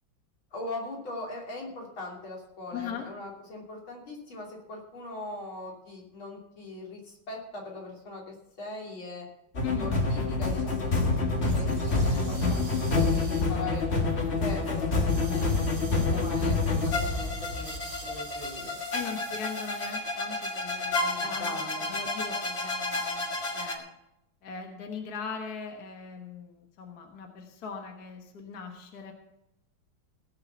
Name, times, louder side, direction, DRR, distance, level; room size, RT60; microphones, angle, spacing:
voice 1, 0.5-9.3 9.7-13.9 14.4-18.7 21.1-21.9, left 2 dB, 80° left, -1 dB, 3.8 m, -40 dB
voice 2, 2.7-3.0 9.6-10.0 15.1-15.3 18.9-21.6 21.9-23.3 23.5-23.9 24.4-29.1, left 6 dB, 50° left, 3 dB, 1.8 m, -39 dB
sound 1, 9.5-23.7, left 3 dB, 35° left, 1.7 m, -28 dB
sound 2, 11.5-21.4, right 3 dB, 45° right, 2.6 m, -48 dB
17.5 x 6.7 x 6.9 m, 0.85 s
omnidirectional pair, 2.2 m